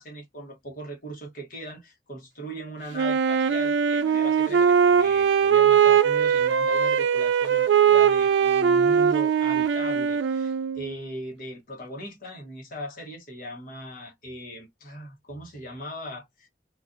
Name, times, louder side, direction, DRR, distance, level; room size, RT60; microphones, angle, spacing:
voice 1, 0.0-16.5, equal, 50° left, 1.1 m, -39 dB
Wind instrument woodwind instrument, 2.9-10.9, right 7 dB, 85° right, 0.4 m, -21 dB
2.4 x 2.4 x 2.5 m
head